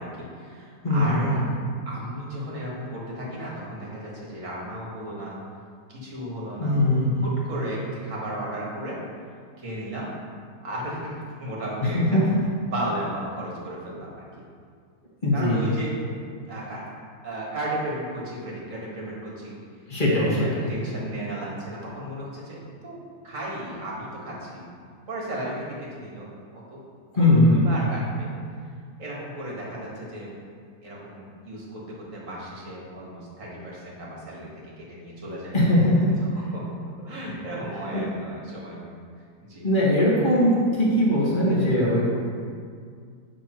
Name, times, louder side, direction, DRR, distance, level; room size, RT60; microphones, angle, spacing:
voice 1, 0.0-1.4 1.9-5.4 5.9-6.8 7.2-9.0 9.6-10.1 10.6-12.2 12.6-14.2 15.3-16.0 16.5-16.8 17.2-19.5 20.1-23.0 23.2-24.6 25.1-26.8 27.1-27.2 27.5-28.3 29.0-30.3 30.8-35.6 36.2-36.6 37.1-38.8 39.4-39.7, right 1 dB, 50° right, -4 dB, 1.9 m, -35 dB
voice 2, 0.8-1.6 6.6-7.3 11.9-12.2 15.2-15.7 19.9-20.5 27.1-27.6 35.5-36.1 37.9-38.0 39.6-42.0, left 1 dB, 30° left, -6 dB, 1.7 m, -20 dB
9.5 x 5.8 x 3.0 m, 2.1 s
omnidirectional pair, 1.8 m